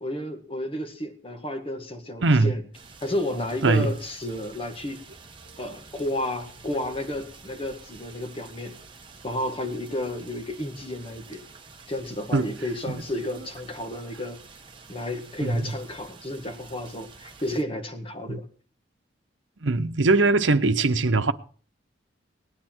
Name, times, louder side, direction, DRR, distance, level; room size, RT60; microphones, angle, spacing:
voice 1, 0.0-2.6 3.0-5.0 5.6-8.8 9.2-11.4 11.9-14.4 14.9-18.4, left 1 dB, 30° left, 1.7 m, -32 dB
voice 2, 2.2-2.5 3.6-3.9 12.3-12.5 12.9-13.0 15.4-15.7 18.3-18.4 19.6-21.3, right 3 dB, 80° right, 0.9 m, -21 dB
sound 1, 2.7-17.6, right 4 dB, 25° right, 1.2 m, -48 dB
18.5 x 10.0 x 4.5 m
head